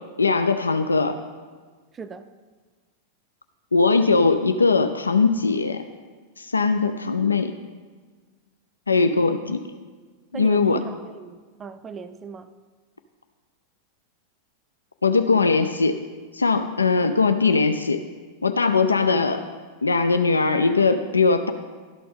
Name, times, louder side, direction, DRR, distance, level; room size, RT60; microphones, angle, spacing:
voice 1, 0.2-1.2 3.7-5.8 6.4-7.5 8.9-9.6 10.3-10.8 15.0-16.0 16.3-18.0 18.4-19.4 19.8-21.5, left 4 dB, 80° left, 8 dB, 0.3 m, -20 dB
voice 2, 1.9-2.3 10.3-12.5, right 6 dB, 20° right, 11 dB, 0.4 m, -38 dB
12.5 x 4.2 x 5.3 m, 1.5 s
figure-of-eight pair, 90°, 0 cm